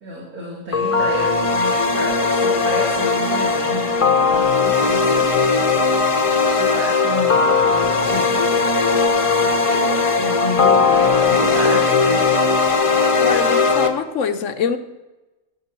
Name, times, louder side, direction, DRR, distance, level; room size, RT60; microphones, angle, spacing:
voice 1, 0.0-5.9 6.5-8.4 9.4-12.2, left 1 dB, 70° right, -5 dB, 3.1 m, -30 dB
sound 1, 0.7-13.9, left 4 dB, 25° left, 0.8 m, -18 dB
voice 2, 13.2-14.8, left 6 dB, 60° left, 10 dB, 1.0 m, -23 dB
15.5 x 5.6 x 7.3 m, 1.1 s
omnidirectional pair, 1.6 m